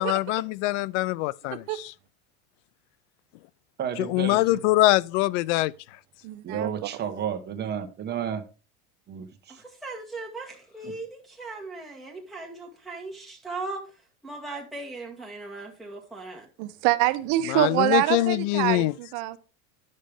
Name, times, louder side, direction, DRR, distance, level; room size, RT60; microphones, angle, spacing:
voice 1, 0.0-1.9 4.0-5.7 17.5-18.9, left 18 dB, 85° left, 0.5 m, -23 dB
voice 2, 3.8-4.4 6.4-8.4 9.1-9.6 10.8-10.9, right 8 dB, 30° right, 1.2 m, -32 dB
voice 3, 6.2-6.9 16.6-19.4, right 16 dB, 65° right, 0.9 m, -25 dB
voice 4, 9.5-13.9 14.2-16.5, right 3 dB, ahead, 2.1 m, -38 dB
10.0 x 6.5 x 3.5 m
cardioid pair, 150°, 34 cm